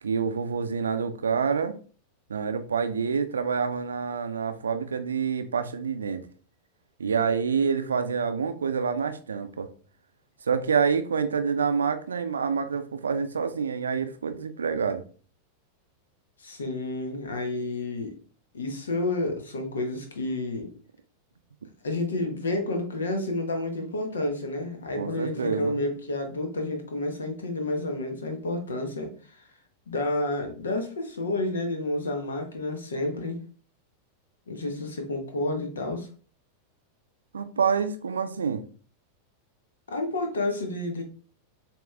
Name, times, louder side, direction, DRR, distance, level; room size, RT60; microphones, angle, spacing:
voice 1, 0.0-1.7 2.3-6.2 7.0-9.7 10.5-15.0 25.0-25.8 37.3-38.6, right 6 dB, 70° right, 0.5 m, -27 dB
voice 2, 16.4-18.2 18.5-20.7 21.8-29.5 29.9-33.4 34.5-36.1 39.9-41.0, left 2 dB, 70° left, 1.1 m, -30 dB
7.1 x 3.0 x 2.4 m
figure-of-eight pair, 90°, 0 cm